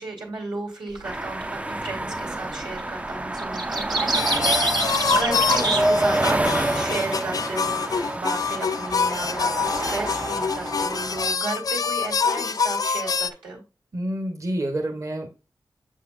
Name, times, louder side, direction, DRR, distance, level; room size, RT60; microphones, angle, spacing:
voice 1, 0.0-6.4 6.7-13.6, right 2 dB, 85° right, -3 dB, 2.5 m, -33 dB
sound 1, 0.9-1.2 2.3-2.7 3.0-6.6, right 3 dB, 65° right, 1.2 m, -27 dB
sound 2, 1.0-11.4, right 1 dB, 15° right, 0.4 m, -28 dB
sound 3, 4.1-13.3, left 5 dB, 50° left, 0.3 m, -26 dB
voice 2, 13.9-15.3, right 1 dB, 40° right, 3 dB, 1.1 m, -28 dB
7.1 x 5.6 x 2.5 m, 0.30 s
cardioid pair, 50°, 8 cm